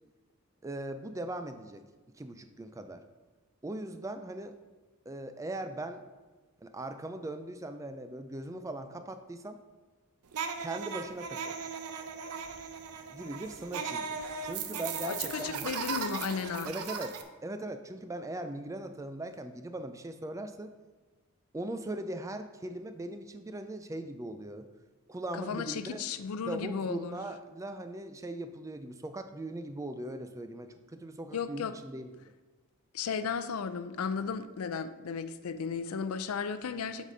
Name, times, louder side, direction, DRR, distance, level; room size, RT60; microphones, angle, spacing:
voice 1, 0.6-1.8 2.2-3.0 3.6-4.5 5.1-6.0 6.6-9.6 10.6-11.5 13.1-15.7 16.6-17.2 17.4-20.7 21.5-24.7 25.1-26.1 26.5-32.1, right 1 dB, 15° right, 8 dB, 0.3 m, -39 dB
sound 1, 10.3-17.2, right 6 dB, 85° right, 0.6 m, -37 dB
voice 2, 15.0-16.7 25.5-27.2 31.3-31.7 32.9-37.1, left 6 dB, 75° left, 11 dB, 0.4 m, -34 dB
8.2 x 4.2 x 4.9 m, 1.3 s
head